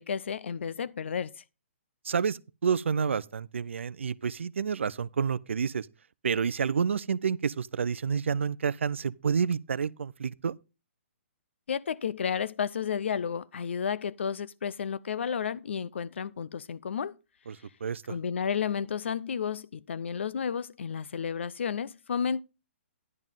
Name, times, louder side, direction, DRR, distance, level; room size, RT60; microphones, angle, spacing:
voice 1, 0.0-1.4 11.7-17.2 18.1-22.4, left 7 dB, 65° left, 0.4 m, -32 dB
voice 2, 2.0-5.9 6.2-10.6 17.5-17.6 17.8-18.2, right 6 dB, 70° right, 0.5 m, -29 dB
10.5 x 8.9 x 3.7 m
figure-of-eight pair, 130°, 7 cm